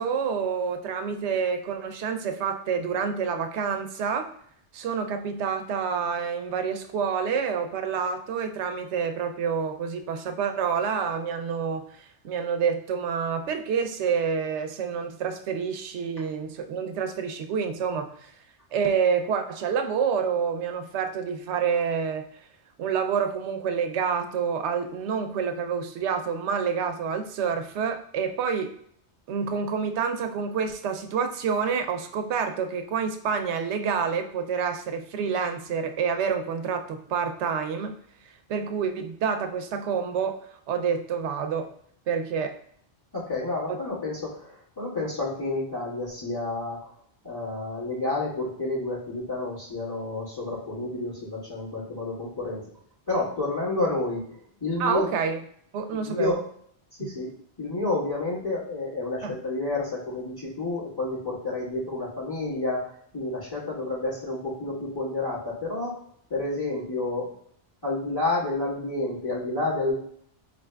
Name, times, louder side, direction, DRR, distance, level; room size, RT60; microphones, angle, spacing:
voice 1, 0.0-4.3 4.7-18.3 18.7-22.3 22.8-28.7 29.3-37.9 38.5-40.4 40.7-41.7 42.1-42.5 54.8-55.4 55.7-56.4 57.0-57.1 59.2-59.3, right 6 dB, 80° right, 6 dB, 0.9 m, -28 dB
voice 2, 43.1-46.9 47.2-52.6 53.1-55.1 56.0-56.4 57.0-57.3 57.6-65.9 66.3-67.3 67.8-69.9, left 2 dB, 20° left, -8 dB, 1.6 m, -30 dB
4.6 x 3.4 x 2.2 m, 0.64 s
omnidirectional pair, 1.2 m